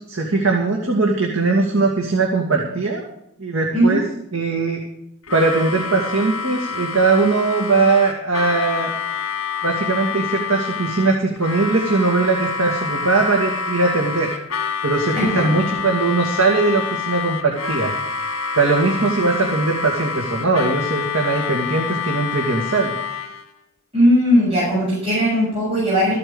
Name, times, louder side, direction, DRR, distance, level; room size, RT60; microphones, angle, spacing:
voice 1, 0.0-3.1 3.4-4.0 4.3-4.8 5.3-8.9 9.6-14.3 14.8-17.9 18.5-22.9, right 3 dB, 75° right, 0 dB, 2.2 m, -20 dB
Harmonica, 5.2-23.5, left 6 dB, 80° left, 1.6 m, -27 dB
voice 2, 15.2-15.5 23.9-26.2, equal, 30° right, -8 dB, 7.0 m, -18 dB
14.5 x 8.9 x 7.0 m, 0.75 s
head